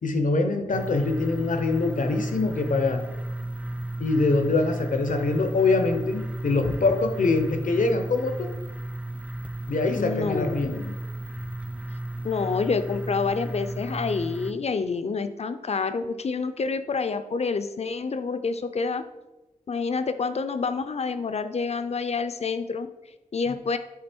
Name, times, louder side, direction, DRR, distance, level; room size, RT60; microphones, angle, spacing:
voice 1, 0.0-3.0 4.0-8.5 9.7-10.8, left 3 dB, 80° left, 6 dB, 0.8 m, -24 dB
sound 1, 0.7-14.5, right 1 dB, 10° right, 0.3 m, -33 dB
voice 2, 9.9-10.9 12.2-19.0 19.7-22.9 23.3-23.8, left 4 dB, 55° left, 11 dB, 0.5 m, -28 dB
8.5 x 3.7 x 4.4 m, 1.1 s
wide cardioid pair, 100°, 13 cm